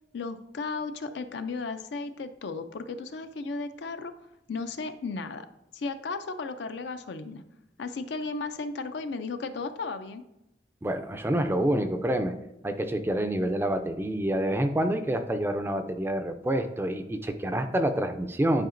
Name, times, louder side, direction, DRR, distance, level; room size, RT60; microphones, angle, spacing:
voice 1, 0.1-4.1 4.5-5.5 5.7-7.4 7.8-10.2, left 4 dB, 65° left, 9 dB, 0.4 m, -35 dB
voice 2, 10.8-12.3 12.6-18.7, right 1 dB, 10° right, 7 dB, 0.3 m, -27 dB
10.5 x 4.9 x 2.5 m, 0.88 s
head